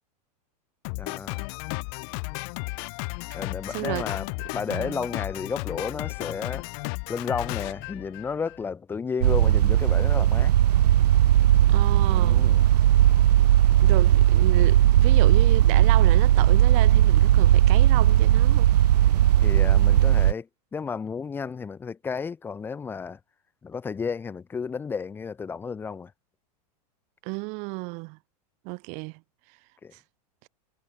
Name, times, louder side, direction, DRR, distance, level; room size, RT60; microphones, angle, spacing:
Drum kit, 0.8-8.6, left 40 dB or more, 35° left, 0.8 m, -34 dB
voice 1, 1.0-1.5 3.3-4.3 4.5-6.7 7.1-10.5 12.1-12.7 19.4-23.2 23.6-26.1 29.8-29.9, left 5 dB, 10° left, 2.6 m, -32 dB
voice 2, 3.7-4.1 4.7-5.1 11.7-12.5 13.8-18.7 27.2-28.2 28.6-29.2 29.9-30.0, right 33 dB, 35° right, 6.2 m, -32 dB
sound 1, 9.2-20.3, right 12 dB, 80° right, 1.7 m, -18 dB
supercardioid pair, 165°, 20 cm